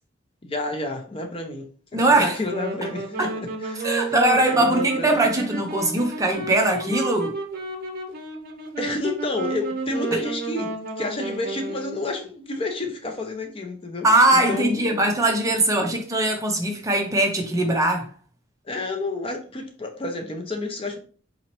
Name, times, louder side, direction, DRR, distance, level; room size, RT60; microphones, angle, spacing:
voice 1, 0.4-3.3 3.6-5.5 8.8-14.9 18.6-21.0, left 2 dB, 30° left, 0.6 m, -30 dB
voice 2, 1.9-2.4 3.2-3.3 3.8-7.4 10.1-10.2 14.0-18.1, right 1 dB, 15° right, 0.6 m, -21 dB
Wind instrument woodwind instrument, 2.4-12.1, right 3 dB, 50° right, 0.8 m, -31 dB
4.0 x 2.9 x 3.0 m
head